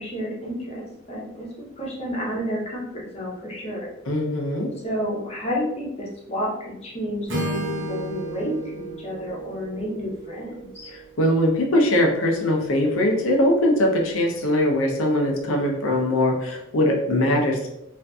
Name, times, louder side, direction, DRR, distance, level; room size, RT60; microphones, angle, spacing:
voice 1, 0.0-3.9 4.8-10.9, equal, 30° left, -5 dB, 0.7 m, -30 dB
voice 2, 4.1-4.7 10.9-17.7, left 1 dB, 85° left, 0 dB, 0.6 m, -21 dB
Acoustic guitar / Strum, 7.3-11.3, right 1 dB, 65° right, 0.7 m, -33 dB
2.5 x 2.5 x 2.2 m, 0.82 s
head